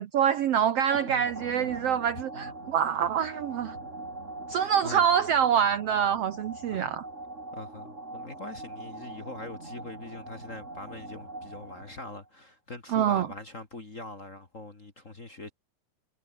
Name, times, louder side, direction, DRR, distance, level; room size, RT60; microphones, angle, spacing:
voice 1, 0.0-3.7 4.5-7.0 12.9-13.3, right 8 dB, 70° right, 1.5 m, -25 dB
sound 1, 0.9-12.3, right 2 dB, 20° right, 5.0 m, -42 dB
voice 2, 4.5-5.0 6.7-6.9 7.5-15.5, left 2 dB, 25° left, 2.0 m, -42 dB
omnidirectional pair, 4.0 m